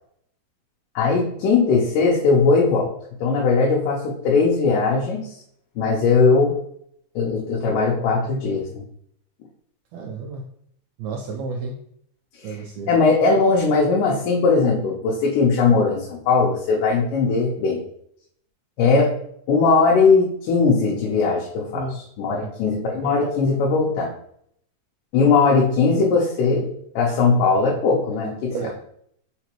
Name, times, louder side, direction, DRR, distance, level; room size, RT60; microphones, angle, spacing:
voice 1, 1.0-2.9 3.2-5.3 5.8-6.6 7.2-8.8 12.4-17.8 18.8-19.2 19.5-24.1 25.1-26.7 27.0-28.7, left 4 dB, 85° left, -3 dB, 2.3 m, -19 dB
voice 2, 9.9-10.4 11.0-11.7 12.4-12.9 21.7-21.9 22.3-22.5 23.0-23.1 23.4-23.5 28.5-28.7, right 4 dB, 85° right, 1 dB, 1.6 m, -31 dB
5.0 x 3.6 x 2.9 m, 0.68 s
omnidirectional pair, 3.7 m